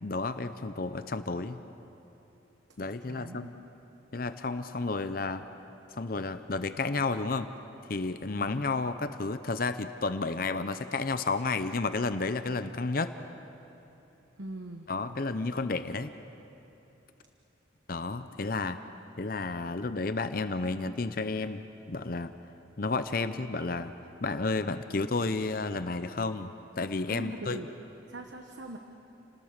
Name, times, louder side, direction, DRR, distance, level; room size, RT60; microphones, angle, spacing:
voice 1, 0.0-1.6 2.8-3.5 4.1-5.4 6.0-7.5 7.9-13.1 14.9-16.1 17.9-18.8 19.2-21.6 21.9-22.3 22.8-23.9 24.2-26.5 26.8-27.6, left 3 dB, 50° left, 10 dB, 0.7 m, -31 dB
voice 2, 3.0-3.5 8.4-8.7 14.4-14.9 27.1-27.7 28.1-28.8, right 1 dB, 70° right, 4 dB, 1.2 m, -41 dB
30.0 x 19.5 x 6.7 m, 3.0 s
head